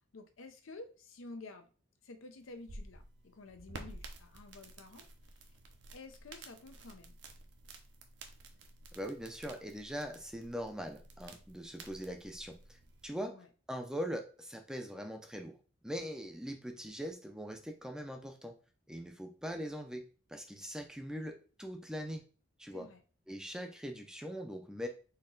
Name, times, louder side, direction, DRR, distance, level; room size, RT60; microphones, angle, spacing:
voice 1, 0.1-1.7 2.0-5.1 5.9-7.2 13.2-13.5 22.7-23.0, left 2 dB, 85° left, 7 dB, 0.6 m, -51 dB
sound 1, 2.4-13.1, right 2 dB, 60° right, 0.7 m, -52 dB
voice 2, 8.9-13.4 13.7-15.6 15.8-18.5 18.9-20.0 20.3-22.2 22.6-22.9 23.3-24.9, equal, 5° right, 4 dB, 0.5 m, -41 dB
4.3 x 2.9 x 3.8 m, 0.38 s
head